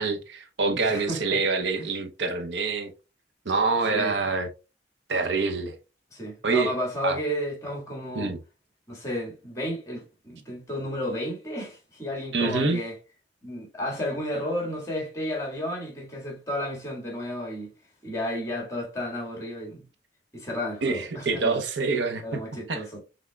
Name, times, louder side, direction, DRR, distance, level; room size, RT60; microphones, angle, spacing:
voice 1, 0.0-2.9 3.5-4.5 5.1-5.8 6.4-6.7 7.0-7.2 8.1-8.4 12.3-12.8 20.8-22.4 22.7-22.8, right 4 dB, 70° right, 0.7 m, -26 dB
voice 2, 0.7-1.4 1.8-1.9 3.9-4.1 6.1-8.3 8.9-13.0 13.4-17.7 18.0-19.8 20.3-21.6 22.2-23.0, equal, 15° left, 1.7 m, -32 dB
5.7 x 3.6 x 2.2 m
head